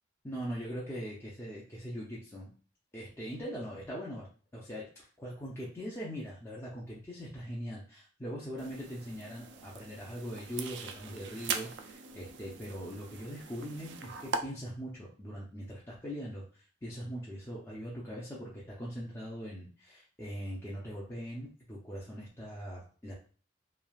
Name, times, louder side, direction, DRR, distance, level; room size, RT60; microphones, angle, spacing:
voice 1, 0.2-2.5 2.9-4.3 4.5-23.1, equal, 15° left, -6 dB, 0.5 m, -41 dB
sound 1, 8.6-14.4, right 5 dB, 75° right, 0.3 m, -41 dB
3.1 x 2.4 x 2.3 m, 0.40 s
head